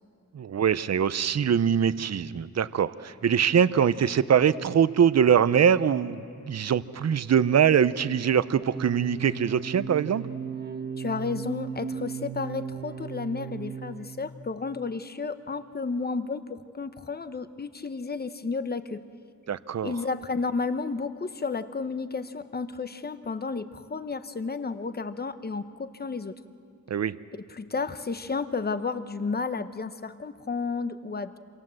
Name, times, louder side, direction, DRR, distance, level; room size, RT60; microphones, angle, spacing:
voice 1, 0.3-10.3 19.5-19.9 26.9-27.1, right 8 dB, 55° right, 16 dB, 0.7 m, -23 dB
sound 1, 8.6-14.3, right 7 dB, 30° right, 1.4 m, -36 dB
voice 2, 11.0-19.0 19.8-26.3 27.5-31.4, left 4 dB, 30° left, 12 dB, 0.9 m, -32 dB
27.5 x 27.0 x 7.7 m, 2.6 s
wide cardioid pair, 165°, 33 cm